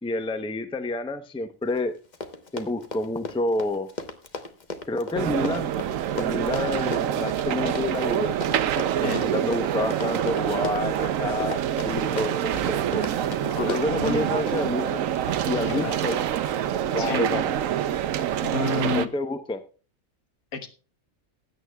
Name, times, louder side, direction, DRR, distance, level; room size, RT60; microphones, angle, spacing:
voice 1, 0.0-2.0 2.5-3.9 4.9-5.7 6.1-8.6 9.0-13.1 13.6-15.0 15.4-16.2 16.9-17.5 18.9-19.6, left 2 dB, 5° left, 9 dB, 0.5 m, -29 dB
Run, 1.8-1.9 2.1-17.0 17.6-17.9 18.2-18.3, left 3 dB, 35° left, 1.1 m, -37 dB
sound 1, 5.2-19.1, right 10 dB, 75° right, 1.0 m, -26 dB
voice 2, 13.4-14.3 15.6-16.0 17.0-17.4 18.4-19.1 20.5-20.7, left 4 dB, 90° left, 7 dB, 1.7 m, -30 dB
19.5 x 8.9 x 2.3 m, 0.36 s
omnidirectional pair, 1.4 m